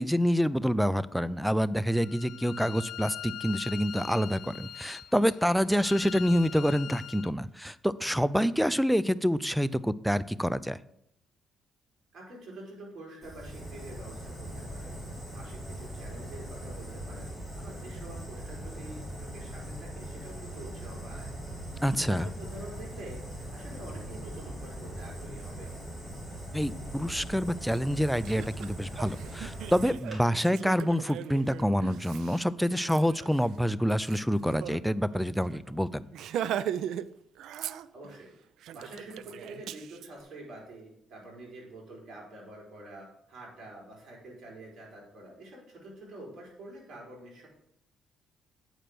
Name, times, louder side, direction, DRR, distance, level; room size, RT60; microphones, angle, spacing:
voice 1, 0.0-10.8 21.8-22.2 26.5-36.0, equal, ahead, 17 dB, 0.4 m, -27 dB
Bowed string instrument, 1.9-7.3, left 11 dB, 75° left, 0.6 m, -42 dB
voice 2, 12.1-15.0 15.3-21.3 21.9-25.7 37.9-38.3 38.7-47.5, right 1 dB, 60° right, -3 dB, 4.2 m, -47 dB
Fire, 13.2-30.2, right 1 dB, 20° right, 3.6 m, -41 dB
Laughter, 27.7-27.8 28.2-34.8 35.1-35.2 35.5-35.7 36.1-37.1 37.4-38.2 38.6-40.1, right 10 dB, 80° right, 0.4 m, -38 dB
8.8 x 5.1 x 6.1 m, 0.78 s
cardioid pair, 90°, 0 cm